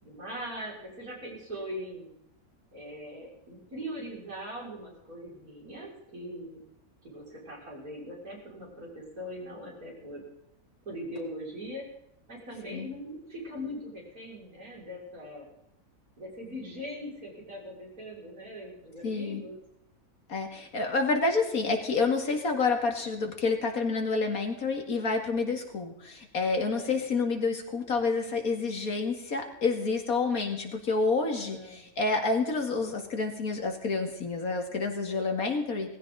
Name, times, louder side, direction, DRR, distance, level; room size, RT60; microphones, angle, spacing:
voice 1, 0.0-2.1 2.7-6.6 7.0-10.2 10.8-11.8 12.3-15.4 16.2-19.6 26.7-27.0 31.4-31.8, equal, 75° right, -4 dB, 6.4 m, -41 dB
voice 2, 19.0-19.4 20.3-36.0, left 4 dB, 75° left, 3 dB, 2.6 m, -29 dB
18.5 x 15.5 x 4.0 m, 0.81 s
omnidirectional pair, 1.5 m